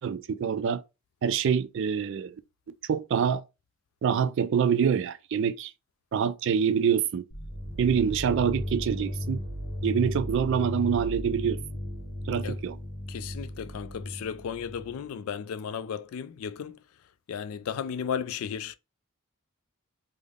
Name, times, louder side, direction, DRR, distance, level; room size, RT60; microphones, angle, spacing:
voice 1, 0.0-0.8 1.2-2.3 2.9-3.4 4.0-5.7 6.1-7.2 7.8-9.4 9.8-11.6 12.3-12.8, right 7 dB, 60° right, 0.3 m, -26 dB
sound 1, 7.3-15.0, equal, 55° left, 0.8 m, -35 dB
voice 2, 13.1-16.8 17.3-18.8, left 7 dB, 75° left, 0.3 m, -34 dB
3.4 x 2.1 x 3.5 m
head